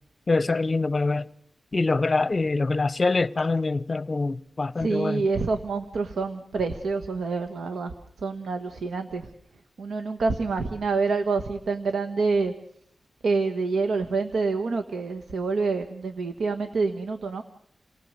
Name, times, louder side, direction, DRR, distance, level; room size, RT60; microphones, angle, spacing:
voice 1, 0.3-1.2 1.7-5.2, left 3 dB, 40° left, 0.8 m, -24 dB
voice 2, 4.8-7.9 8.2-9.3 9.8-12.5 13.2-17.4, right 4 dB, 85° right, 1.4 m, -27 dB
29.0 x 18.5 x 6.6 m
wide cardioid pair, 85°, 0 cm